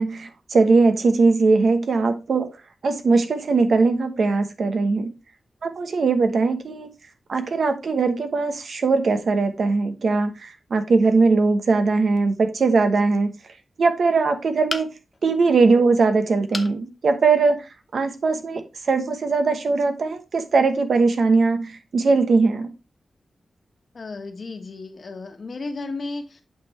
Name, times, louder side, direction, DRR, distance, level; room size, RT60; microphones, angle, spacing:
voice 1, 0.0-2.5 2.8-5.1 5.6-6.9 7.3-13.3 13.8-14.9 15.2-17.6 17.9-22.7, right 4 dB, 70° right, 1.1 m, -20 dB
sound 1, 14.7-15.2 16.5-16.8 17.3-17.4 17.8-17.9, left 3 dB, 30° left, 0.7 m, -31 dB
voice 2, 23.9-26.4, left 3 dB, 55° left, 1.4 m, -34 dB
8.6 x 5.6 x 3.2 m
wide cardioid pair, 130°, 0 cm